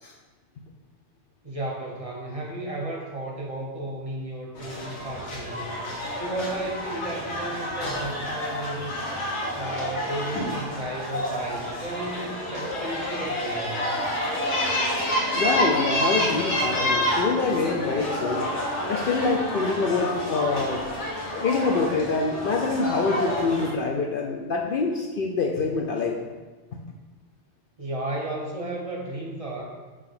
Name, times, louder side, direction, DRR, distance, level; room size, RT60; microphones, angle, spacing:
voice 1, 1.4-9.0 9.5-13.8 27.8-29.7, right 1 dB, 35° right, -2 dB, 1.0 m, -34 dB
sound 1, 4.6-23.7, equal, 80° left, 1.5 m, -29 dB
voice 2, 15.3-18.4 18.8-20.9 21.3-26.1 26.7-26.8, left 4 dB, 60° left, 1 dB, 0.7 m, -25 dB
5.8 x 3.2 x 5.8 m, 1.3 s
omnidirectional pair, 1.2 m